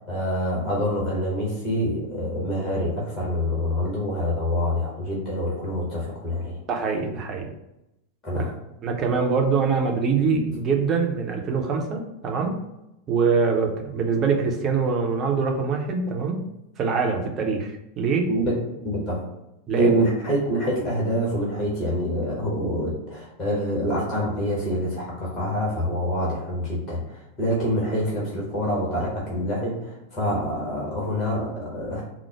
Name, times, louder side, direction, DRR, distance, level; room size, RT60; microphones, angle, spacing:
voice 1, 0.0-6.6 8.2-8.5 18.3-18.5 18.8-19.2 19.7-32.0, equal, 30° left, -5 dB, 1.3 m, -26 dB
voice 2, 6.7-7.5 8.3-8.4 8.8-12.6 13.1-16.4 16.8-18.3 19.7-19.9, right 5 dB, 30° right, 2 dB, 0.7 m, -24 dB
4.6 x 2.0 x 4.5 m, 0.89 s
figure-of-eight pair, 90°, 0 cm